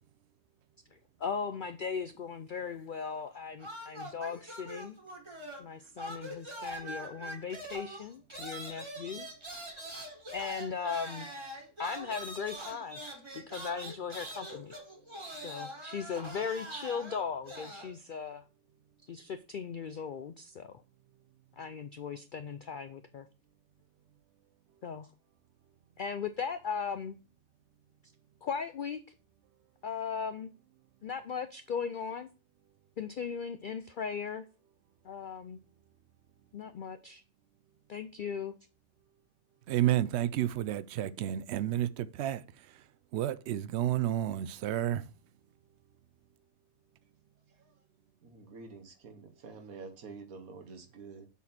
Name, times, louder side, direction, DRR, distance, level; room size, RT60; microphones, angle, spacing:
voice 1, 0.9-5.0 5.6-9.3 10.3-11.3 11.8-13.0 13.3-14.8 15.4-18.4 19.0-20.8 21.6-23.3 24.8-25.1 26.0-27.2 28.4-29.0 29.8-30.5 31.0-32.3 33.0-34.4 35.0-35.6 36.5-37.2 37.9-38.5, left 6 dB, 85° left, 0.4 m, -38 dB
sound 1, 3.6-5.7 6.0-17.9, equal, 20° right, 1.5 m, -43 dB
voice 2, 39.7-45.1, right 12 dB, 65° right, 0.7 m, -31 dB
voice 3, 47.5-47.8 48.2-51.3, right 4 dB, 85° right, 1.6 m, -48 dB
7.2 x 4.1 x 4.2 m
omnidirectional pair, 1.5 m